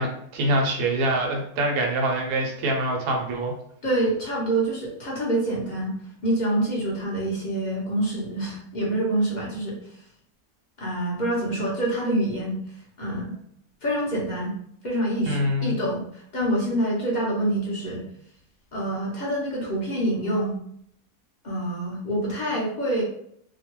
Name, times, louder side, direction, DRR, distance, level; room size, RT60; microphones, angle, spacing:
voice 1, 0.0-3.5 15.2-15.7, right 1 dB, 85° right, 1 dB, 1.2 m, -25 dB
voice 2, 3.8-5.9 6.2-9.8 10.8-12.6 13.0-13.4 13.8-14.5 14.8-18.0 18.7-20.5 21.4-23.0, right 1 dB, 40° left, -4 dB, 0.7 m, -26 dB
2.9 x 2.2 x 3.0 m, 0.68 s
omnidirectional pair, 1.6 m